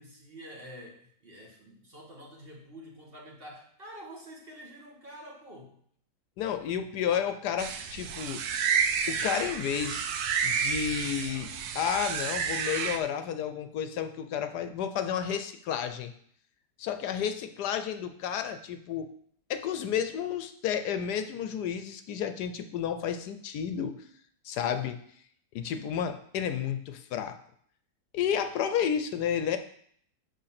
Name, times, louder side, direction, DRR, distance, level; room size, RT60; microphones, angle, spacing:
voice 1, 0.0-5.8, equal, 35° right, -2 dB, 1.7 m, -47 dB
voice 2, 6.4-8.5 9.1-10.1 10.4-16.1 16.8-19.1 19.5-24.0 24.4-25.0 25.5-27.4 28.1-29.6, left 8 dB, 75° left, 9 dB, 1.2 m, -31 dB
sound 1, 7.6-13.0, right 6 dB, 70° right, 1.2 m, -30 dB
6.5 x 5.4 x 5.8 m, 0.63 s
omnidirectional pair, 1.8 m